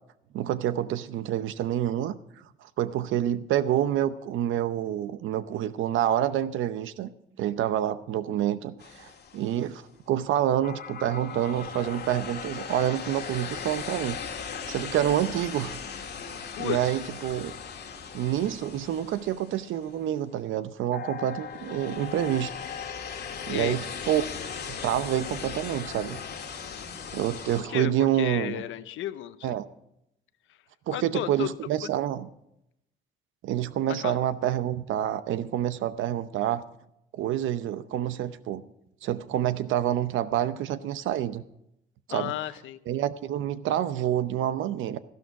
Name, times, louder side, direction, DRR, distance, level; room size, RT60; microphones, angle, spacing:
voice 1, 0.3-2.1 2.6-7.1 7.4-14.2 14.7-15.8 16.6-17.5 18.1-22.5 23.5-24.2 24.7-26.2 27.1-28.6 29.4-29.6 30.9-32.3 33.4-36.6 37.1-38.6 39.0-41.4 42.1-42.3 42.9-45.0, right 11 dB, 80° right, 14 dB, 0.8 m, -27 dB
sound 1, 8.8-9.8 10.6-20.1 20.9-27.6, left 6 dB, 60° left, 1.7 m, -38 dB
voice 2, 16.6-17.0 23.5-23.8 27.6-29.5 30.9-31.5 34.0-34.2 42.1-42.8, left 12 dB, 80° left, 13 dB, 0.8 m, -33 dB
13.0 x 12.0 x 4.7 m, 0.80 s
cardioid pair, 90°, 20 cm